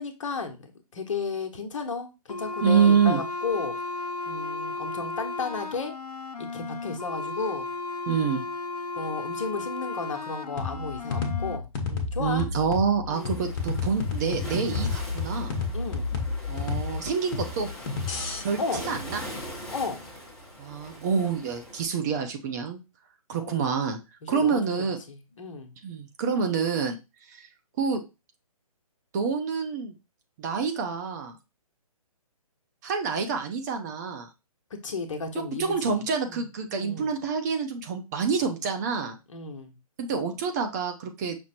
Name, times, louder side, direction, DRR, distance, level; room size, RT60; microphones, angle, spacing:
voice 1, 0.0-3.7 4.3-5.9 6.4-7.7 9.0-12.5 13.1-13.4 15.7-16.1 18.6-18.9 19.7-20.0 23.4-23.7 24.2-25.7 34.8-36.0 36.3-36.4 36.8-37.1 39.3-39.7, left 4 dB, 55° left, 5 dB, 1.0 m, -34 dB
sound 1, 2.3-11.6, left 3 dB, 85° left, 0.7 m, -34 dB
voice 2, 2.6-3.2 8.1-8.4 12.2-15.5 16.5-17.7 18.4-19.2 20.6-22.8 23.3-24.0 24.3-25.0 25.8-27.0 27.3-27.5 27.8-28.0 29.1-29.9 30.4-31.3 32.8-34.3 35.3-39.2 40.0-41.4, right 6 dB, 30° right, 4 dB, 0.6 m, -27 dB
sound 2, 10.6-18.4, left 4 dB, 35° left, 1.1 m, -31 dB
Waves surf, 13.1-21.8, equal, 5° left, 1.0 m, -42 dB
6.0 x 2.1 x 4.3 m, 0.27 s
figure-of-eight pair, 140°, 19 cm